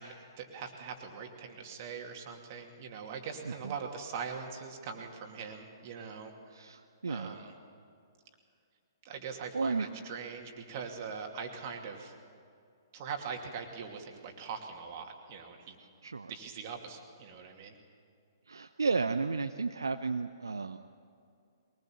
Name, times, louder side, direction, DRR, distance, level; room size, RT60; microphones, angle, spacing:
voice 1, 0.0-6.8 7.1-7.5 9.0-12.1 12.9-15.8 16.3-17.8, right 6 dB, 40° right, 3 dB, 2.6 m, -42 dB
voice 2, 6.5-7.3 9.5-9.9 16.0-16.3 18.5-20.8, right 4 dB, 70° right, 8 dB, 0.7 m, -33 dB
22.5 x 20.0 x 7.3 m, 2.4 s
figure-of-eight pair, 120°, 2 cm